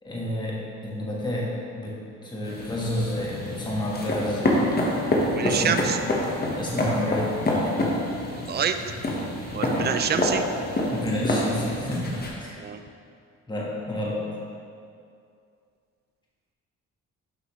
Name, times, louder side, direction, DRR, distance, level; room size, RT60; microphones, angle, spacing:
voice 1, 0.0-1.5 1.8-4.6 5.4-5.8 6.6-7.9 9.5-9.9 10.9-12.5 13.5-14.2, left 1 dB, 15° left, -5 dB, 1.3 m, -30 dB
sound 1, 2.4-12.3, left 1 dB, 30° left, 1.2 m, -27 dB
voice 2, 5.3-6.0 8.3-8.8 9.5-10.4 12.6-12.8, right 7 dB, 35° right, 8 dB, 0.4 m, -27 dB
7.0 x 5.5 x 3.1 m, 2.4 s
cardioid pair, 90°, 30 cm